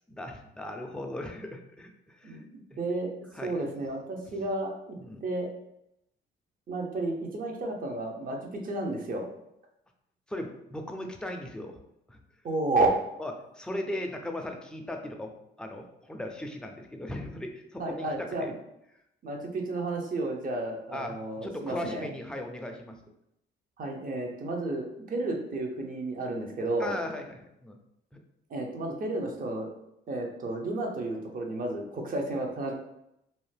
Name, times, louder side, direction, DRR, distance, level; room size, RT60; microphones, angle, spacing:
voice 1, 0.1-2.4 2.7-2.8 3.3-3.6 4.3-4.4 5.0-5.2 10.3-11.8 12.1-12.2 13.2-18.5 20.9-23.0 26.8-27.8 28.1-28.2, left 1 dB, 5° left, 3 dB, 0.4 m, -38 dB
voice 2, 2.8-3.1 3.4-5.5 6.7-9.3 12.4-12.9 17.8-18.6 19.2-22.1 23.8-27.0 28.5-29.7 30.1-32.7, right 2 dB, 45° right, 1 dB, 0.7 m, -32 dB
2.6 x 2.1 x 3.3 m, 0.81 s
cardioid pair, 90°, 20 cm